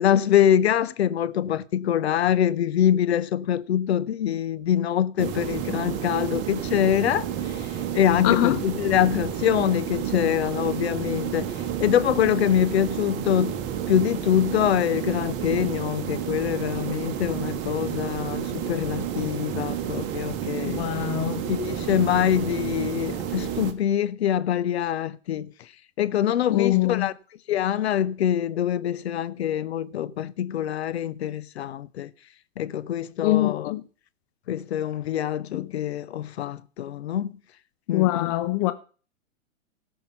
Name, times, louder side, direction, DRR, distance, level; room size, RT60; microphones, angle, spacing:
voice 1, 0.0-7.3 7.6-7.7 7.9-11.5 11.8-13.6 13.9-20.9 21.5-25.5 26.0-27.1 27.5-32.1 32.6-33.7 34.5-37.4 37.9-38.3, left 10 dB, 55° left, 0.9 m, -24 dB
sound 1, 5.2-23.7, right 9 dB, 30° right, 1.4 m, -30 dB
voice 2, 8.2-8.6 20.6-21.4 26.5-27.1 33.2-33.8 35.5-35.7 37.9-38.7, left 17 dB, 30° left, 0.7 m, -23 dB
17.5 x 5.8 x 5.6 m
figure-of-eight pair, 110°, 39 cm